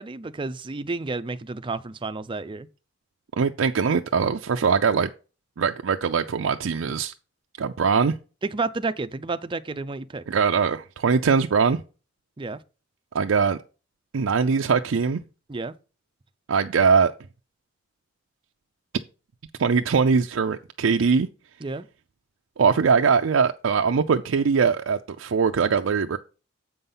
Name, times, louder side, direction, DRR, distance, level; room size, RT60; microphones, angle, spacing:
voice 1, 0.0-2.7 8.4-10.2 12.4-12.6 15.5-15.7 21.6-21.9, right 3 dB, 25° right, 0.5 m, -31 dB
voice 2, 3.4-5.1 5.6-7.1 7.6-8.2 10.3-11.8 13.1-13.6 14.1-15.2 16.5-17.1 19.6-21.3 22.6-26.2, right 5 dB, 85° right, 0.5 m, -21 dB
7.7 x 5.5 x 5.5 m
head